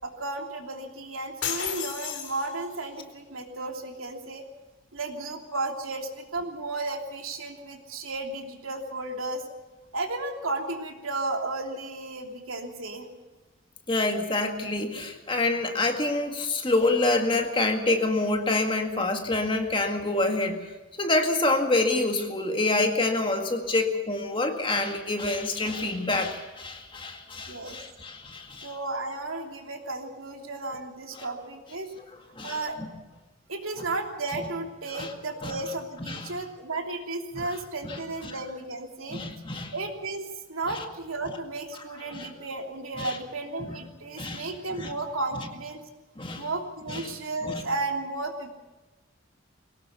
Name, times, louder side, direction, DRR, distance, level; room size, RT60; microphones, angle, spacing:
voice 1, 0.0-4.4 4.9-9.4 9.9-13.1 27.5-27.8 28.6-31.9 32.4-32.8 33.5-39.2 39.7-45.8 46.3-48.5, right 2 dB, 85° right, 3 dB, 3.1 m, -34 dB
sound 1, 1.4-2.9, left 8 dB, 60° left, 2.5 m, -33 dB
voice 2, 13.9-20.6 21.0-28.7 31.2-31.3 32.4-32.9 33.8-33.9 34.4-34.5 34.9-35.1 35.4-35.6 36.0-36.2 37.3-37.5 37.8-38.3 39.1-39.7 40.7-40.8 41.7-41.8 42.1-42.3 43.0-43.2 43.6-43.8 44.2-44.5 44.8-44.9 46.2-46.4 46.9-47.0 47.4-47.6, left 2 dB, 25° left, 4 dB, 2.0 m, -27 dB
22.0 x 18.0 x 6.9 m, 1.2 s
head